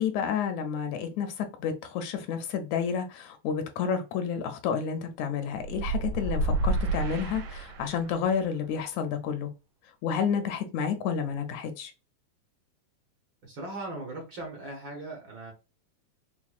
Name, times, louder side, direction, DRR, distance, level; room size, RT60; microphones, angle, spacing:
voice 1, 0.0-9.5 10.0-11.9, left 7 dB, 80° left, 1.8 m, -30 dB
sound 1, 5.6-8.2, right 2 dB, 90° right, 2.2 m, -29 dB
voice 2, 13.4-15.5, right 2 dB, 60° right, 1.3 m, -39 dB
5.8 x 2.1 x 2.4 m
omnidirectional pair, 3.3 m